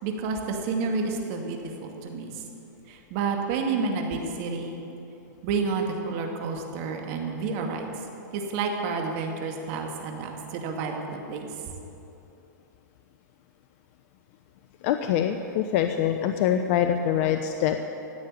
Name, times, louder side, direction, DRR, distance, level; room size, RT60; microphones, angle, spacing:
voice 1, 0.0-2.4 2.9-4.7 5.4-7.9 8.3-11.5, right 4 dB, 50° right, 2 dB, 2.2 m, -30 dB
voice 2, 14.8-17.9, left 9 dB, 50° left, 7 dB, 0.8 m, -24 dB
17.0 x 6.6 x 9.8 m, 2.8 s
hypercardioid pair, 115°, 10 cm